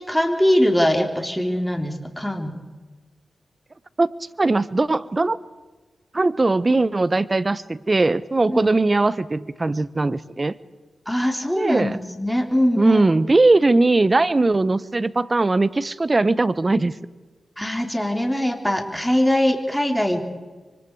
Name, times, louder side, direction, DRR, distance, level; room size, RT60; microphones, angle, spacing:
voice 1, 0.0-2.6 8.5-8.7 11.1-13.0 17.6-20.2, left 1 dB, 5° left, 3 dB, 3.9 m, -22 dB
voice 2, 4.4-5.4 6.1-10.5 11.5-12.0 12.8-16.9, right 2 dB, 35° right, 16 dB, 1.1 m, -19 dB
26.5 x 24.5 x 4.9 m, 1.3 s
supercardioid pair, 40°, 0 cm